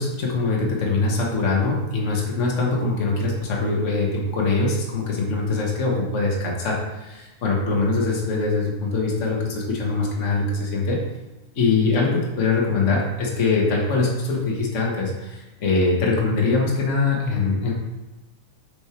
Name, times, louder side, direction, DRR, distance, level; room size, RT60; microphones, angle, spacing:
voice 1, 0.0-11.0 11.5-17.7, left 3 dB, 65° left, -2 dB, 0.7 m, -23 dB
6.9 x 5.3 x 4.4 m, 1.1 s
omnidirectional pair, 3.5 m